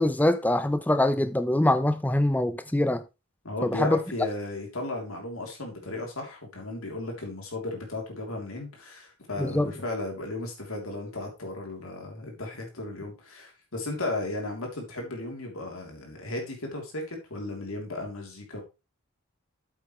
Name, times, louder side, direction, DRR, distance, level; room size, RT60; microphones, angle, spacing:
voice 1, 0.0-3.0 3.6-4.0 9.4-9.7, left 1 dB, 10° left, 0.5 m, -24 dB
voice 2, 3.4-18.6, left 2 dB, 75° left, 3.2 m, -35 dB
8.8 x 8.0 x 3.2 m
head